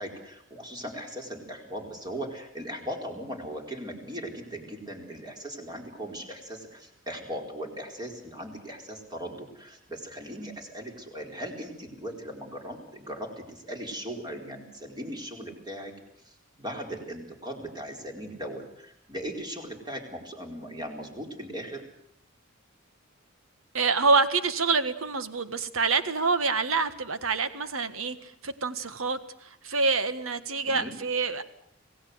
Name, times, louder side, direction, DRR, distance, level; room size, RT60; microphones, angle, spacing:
voice 1, 0.0-21.9 30.6-30.9, equal, 20° right, 2 dB, 4.3 m, -38 dB
voice 2, 23.7-31.4, right 4 dB, 80° right, 11 dB, 1.6 m, -26 dB
26.5 x 17.5 x 8.0 m, 0.72 s
head